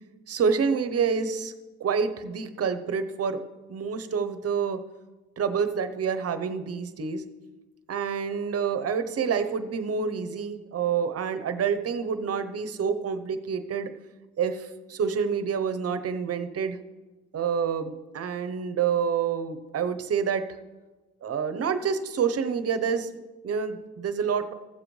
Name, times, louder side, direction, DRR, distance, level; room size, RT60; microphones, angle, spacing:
voice 1, 0.3-1.5 1.8-3.4 3.7-4.8 5.4-7.3 7.9-13.9 14.4-16.8 17.3-20.4 21.2-23.1 23.4-24.5, right 6 dB, 50° right, 10 dB, 1.0 m, -27 dB
15.5 x 7.7 x 3.3 m, 1.2 s
cardioid pair, 90°, 30 cm